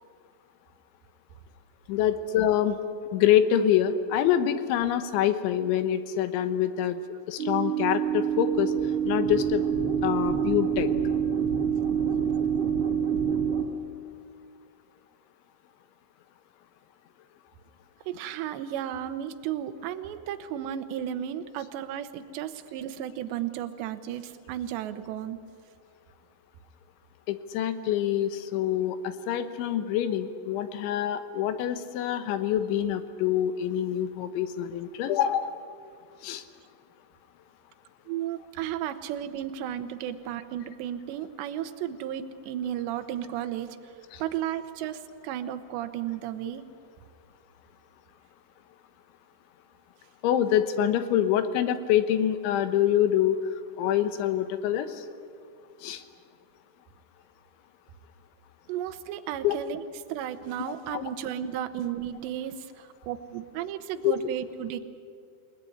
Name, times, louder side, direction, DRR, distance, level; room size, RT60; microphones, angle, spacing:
voice 1, 1.9-2.8 3.1-7.0 7.3-8.7 9.0-9.6 10.0-10.9 27.3-35.5 36.2-36.4 44.1-44.2 50.2-53.4 53.8-55.1 55.8-56.0 59.4-59.5 60.9-61.1 64.0-64.2, left 10 dB, 80° left, 10 dB, 3.4 m, -25 dB
sound 1, 7.4-13.6, right 8 dB, 35° right, 2.5 m, -26 dB
voice 2, 18.1-25.4 38.1-43.9 44.2-46.6 58.7-59.8 60.1-64.8, right 11 dB, 75° right, 9 dB, 3.1 m, -34 dB
29.0 x 19.0 x 9.9 m, 2.2 s
omnidirectional pair, 5.5 m